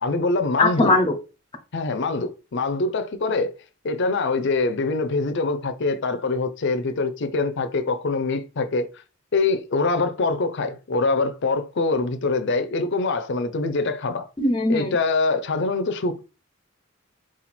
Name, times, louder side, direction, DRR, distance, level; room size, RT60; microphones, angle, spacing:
voice 1, 0.0-1.0 1.7-3.5 3.8-8.9 9.3-14.3 14.7-16.2, left 3 dB, 60° left, 0.6 m, -24 dB
voice 2, 0.6-1.2 14.4-15.0, left 2 dB, 25° left, 0.6 m, -20 dB
4.2 x 2.4 x 4.2 m
head